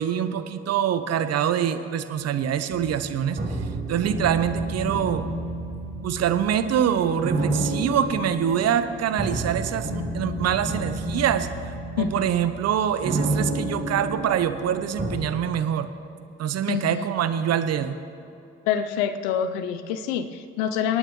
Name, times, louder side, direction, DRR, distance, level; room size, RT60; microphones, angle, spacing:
voice 1, 0.0-5.3 6.0-15.9 16.4-18.0, right 9 dB, 55° right, 11 dB, 0.8 m, -25 dB
sound 1, 2.7-15.2, right 2 dB, 30° right, 3.0 m, -30 dB
voice 2, 16.7-17.0 18.7-21.0, left 8 dB, 75° left, 11 dB, 0.7 m, -26 dB
26.0 x 8.9 x 3.1 m, 2.7 s
hypercardioid pair, 40°, 31 cm